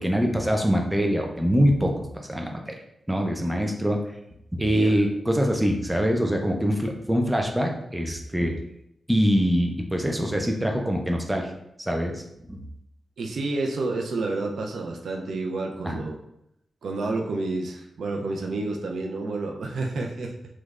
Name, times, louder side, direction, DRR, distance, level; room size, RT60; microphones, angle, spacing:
voice 1, 0.0-2.7 3.1-4.0 4.6-8.5 9.1-11.5 11.8-12.2 12.5-12.6 15.8-16.0, equal, 10° right, 2 dB, 0.5 m, -24 dB
voice 2, 13.2-16.2 16.8-20.3, right 3 dB, 80° right, 2 dB, 0.4 m, -29 dB
3.3 x 3.1 x 2.4 m, 0.81 s
cardioid pair, 90°, 0 cm